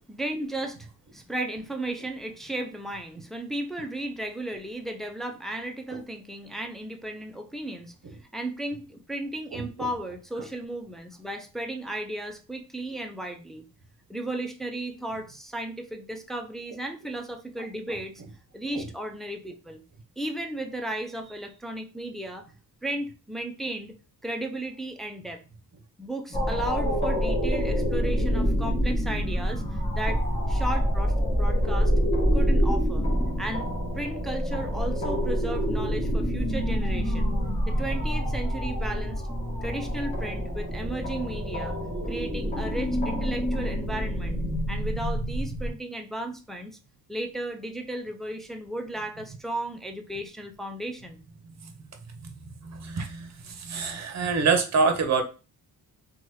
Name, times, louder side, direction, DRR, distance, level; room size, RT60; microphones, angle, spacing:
voice 1, 0.1-7.9 8.3-13.6 14.1-18.2 18.5-19.8 20.2-22.5 22.8-24.0 24.2-25.4 26.0-31.9 32.3-33.1 33.4-33.7 34.0-37.3 37.7-39.2 39.6-41.8 42.1-44.4 44.7-46.8 47.1-51.2, right 1 dB, ahead, 4 dB, 0.3 m, -35 dB
sound 1, 26.3-45.7, equal, 15° left, 1.0 m, -26 dB
voice 2, 52.6-55.2, right 5 dB, 45° right, 6 dB, 0.7 m, -25 dB
2.8 x 2.3 x 3.1 m, 0.33 s
cardioid pair, 95°, 38 cm